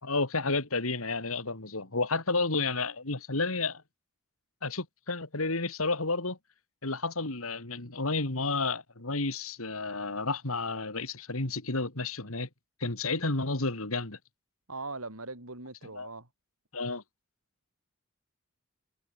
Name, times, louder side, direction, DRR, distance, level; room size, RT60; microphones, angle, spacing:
voice 1, 0.0-3.8 4.6-6.4 6.8-12.5 12.8-14.2 16.0-16.1 16.7-17.0, left 3 dB, 80° left, 3.0 m, -31 dB
voice 2, 14.7-16.3, right 3 dB, 80° right, 7.1 m, -40 dB
head